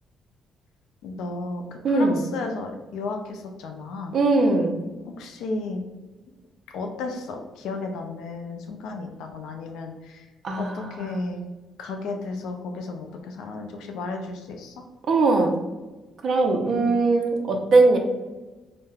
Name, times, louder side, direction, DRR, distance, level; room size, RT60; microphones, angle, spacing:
voice 1, 1.0-4.1 5.0-5.8 6.7-10.3 10.6-11.4 11.8-14.7 16.7-17.0, left 3 dB, 85° left, 3 dB, 0.4 m, -33 dB
voice 2, 1.8-2.2 4.1-4.8 10.4-11.3 15.1-15.5 16.2-18.0, right 3 dB, 60° right, 3 dB, 0.4 m, -21 dB
3.2 x 2.0 x 2.3 m, 1.2 s
cardioid pair, 90°, 0 cm